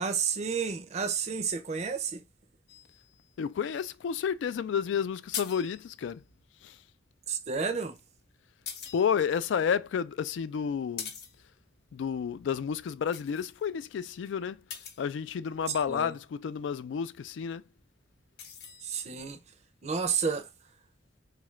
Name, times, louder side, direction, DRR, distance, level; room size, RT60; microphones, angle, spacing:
voice 1, 0.0-2.2 7.3-8.0 15.7-16.1 18.8-19.4 19.8-20.5, right 6 dB, 35° right, 0.5 m, -31 dB
sound 1, 2.7-6.4 7.9-16.0 17.2-19.6, left 7 dB, 60° left, 0.7 m, -46 dB
voice 2, 3.4-6.2 6.6-6.7 8.9-11.1 11.9-14.6 15.0-17.6, left 7 dB, 75° left, 0.3 m, -31 dB
3.6 x 2.4 x 3.1 m
head